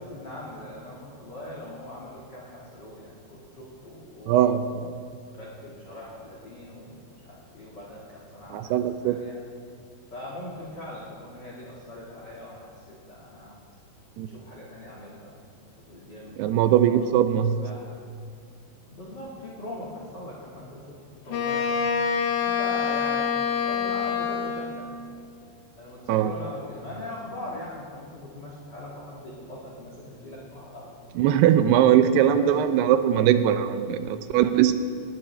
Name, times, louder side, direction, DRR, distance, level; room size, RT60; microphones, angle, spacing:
voice 1, 0.0-4.5 5.3-9.4 10.1-13.6 14.2-15.4 15.9-16.4 16.8-17.1 17.5-18.0 18.9-22.0 22.4-23.3 23.6-24.9 25.7-31.0 31.6-31.8 32.1-32.5, left 1 dB, 45° left, -6 dB, 1.4 m, -41 dB
voice 2, 4.3-4.9 8.5-9.2 14.2-14.3 16.4-17.6 26.1-26.3 31.2-34.7, right 10 dB, 80° right, 10 dB, 2.5 m, -21 dB
Wind instrument woodwind instrument, 21.3-24.8, left 6 dB, 70° left, 2.8 m, -26 dB
20.0 x 12.0 x 3.3 m, 2.3 s
omnidirectional pair, 4.9 m